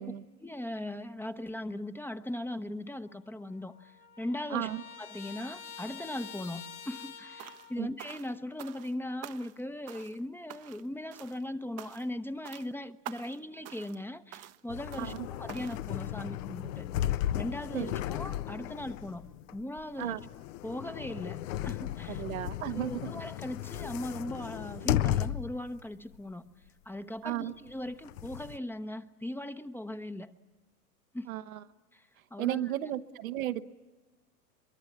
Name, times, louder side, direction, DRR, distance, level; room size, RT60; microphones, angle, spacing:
voice 1, 0.4-4.7 5.0-16.9 17.4-20.2 20.6-22.2 22.7-26.4 26.8-30.3 31.1-31.3 31.9-32.6, left 1 dB, 5° left, 10 dB, 0.8 m, -39 dB
Trumpet, 3.1-3.2 3.4-7.8, left 7 dB, 80° left, 3.9 m, -47 dB
voice 2, 4.5-4.8 7.8-7.9 15.0-15.3 17.7-17.9 20.0-20.2 22.1-23.1 27.2-27.5 31.3-31.6 32.4-33.6, right 14 dB, 70° right, 10 dB, 1.2 m, -34 dB
sound 1, 7.4-7.7 8.0-8.9 9.2-9.6 9.9-10.2 10.5-10.9 11.1-11.4 11.8-12.2 12.4-12.7 13.0-13.4 13.6-14.0 14.3-14.6 14.9-15.2 15.5-15.8, right 14 dB, 35° right, 0.8 m, -47 dB
sound 2, 14.7-25.7 26.1-26.2 27.7-28.6, left 12 dB, 60° left, 0.8 m, -35 dB
23.5 x 23.0 x 8.6 m, 1.2 s
hypercardioid pair, 90°, 44 cm